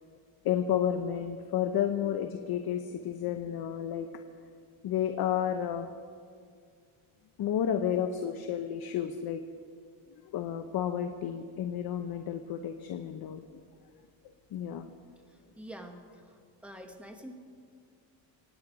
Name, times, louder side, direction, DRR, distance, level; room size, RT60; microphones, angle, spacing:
voice 1, 0.4-4.1 4.8-5.9 7.4-9.4 10.2-13.6 14.5-14.9, left 9 dB, 50° left, 7 dB, 0.8 m, -31 dB
voice 2, 15.6-17.3, equal, 5° right, 4 dB, 1.1 m, -46 dB
24.5 x 9.4 x 5.0 m, 2.2 s
cardioid pair, 160°, 46 cm